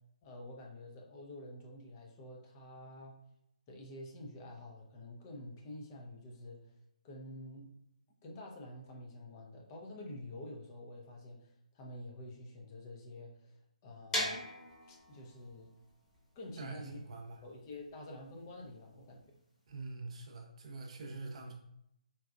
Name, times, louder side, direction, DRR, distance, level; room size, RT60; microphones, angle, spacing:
voice 1, 0.2-3.2 3.7-6.6 7.0-7.7 8.2-13.6 13.8-14.5 14.9-15.7 16.3-17.0 17.4-19.2, left 1 dB, 30° left, 0 dB, 0.5 m, -48 dB
sound 1, 14.1-19.9, equal, 10° left, 1.0 m, -41 dB
voice 2, 16.6-17.4 19.7-21.5, right 3 dB, 55° right, 2 dB, 0.6 m, -45 dB
4.0 x 2.3 x 2.3 m, 0.77 s
figure-of-eight pair, 140°, 4 cm